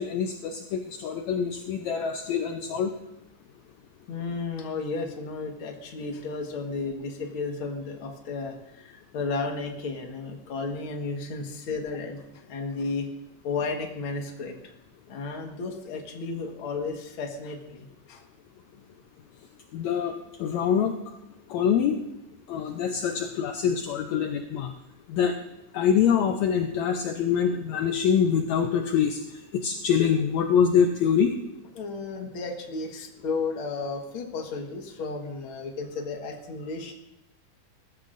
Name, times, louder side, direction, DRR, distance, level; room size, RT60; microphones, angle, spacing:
voice 1, 0.0-2.9 19.7-20.9 21.5-22.0 22.5-24.7 25.1-25.4 25.7-31.3, left 7 dB, 75° left, 4 dB, 1.9 m, -25 dB
voice 2, 4.1-13.1 13.4-14.7 15.1-18.2 31.8-36.9, left 4 dB, 50° left, 2 dB, 2.0 m, -33 dB
20.5 x 14.5 x 2.6 m, 0.89 s
omnidirectional pair, 3.5 m